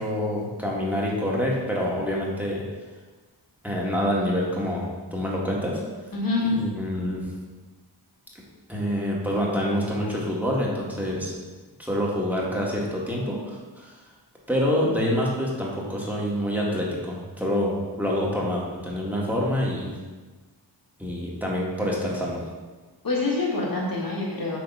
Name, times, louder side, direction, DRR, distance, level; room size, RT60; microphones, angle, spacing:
voice 1, 0.0-2.6 3.6-5.8 6.4-7.2 8.7-11.4 11.8-14.0 14.5-20.0 21.0-22.4, equal, 5° right, -4 dB, 1.8 m, -26 dB
voice 2, 6.1-6.5 23.0-24.6, left 3 dB, 55° left, -4 dB, 1.8 m, -26 dB
7.7 x 3.6 x 5.5 m, 1.3 s
wide cardioid pair, 85°, 42 cm